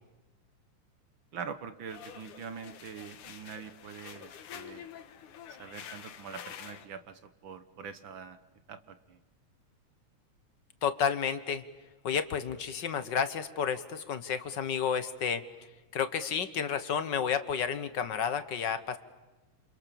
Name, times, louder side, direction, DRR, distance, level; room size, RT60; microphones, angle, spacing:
voice 1, 1.3-4.9 5.6-8.4 8.7-9.2, right 6 dB, 60° right, 11 dB, 1.3 m, -44 dB
sound 1, 1.9-6.9, left 9 dB, 85° left, 3.0 m, -47 dB
voice 2, 10.8-11.6 12.0-15.4 15.9-19.0, left 7 dB, 55° left, 11 dB, 1.3 m, -31 dB
28.0 x 28.0 x 7.1 m, 1.2 s
omnidirectional pair, 3.4 m